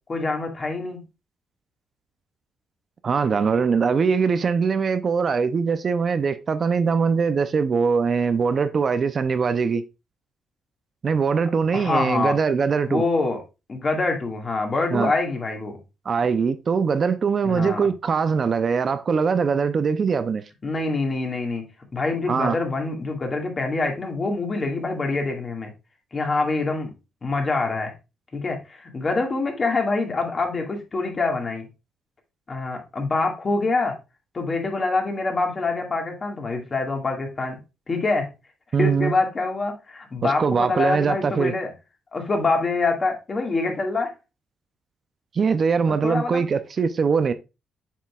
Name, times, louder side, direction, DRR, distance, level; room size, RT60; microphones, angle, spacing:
voice 1, 0.1-1.0 11.7-12.4 12.9-13.4 13.7-15.8 17.4-17.9 20.6-21.7 21.9-25.7 26.1-26.9 27.2-27.9 28.3-31.7 32.5-34.0 34.3-37.6 37.9-38.3 38.8-41.7 42.1-44.1 45.9-46.4, left 3 dB, 35° left, 1.9 m, -25 dB
voice 2, 3.0-9.8 11.0-13.0 14.9-15.1 16.1-20.4 22.3-22.6 38.7-39.1 40.2-41.5 45.3-47.3, right 5 dB, 45° right, 0.5 m, -22 dB
7.4 x 5.5 x 2.4 m
cardioid pair, 90°, 0 cm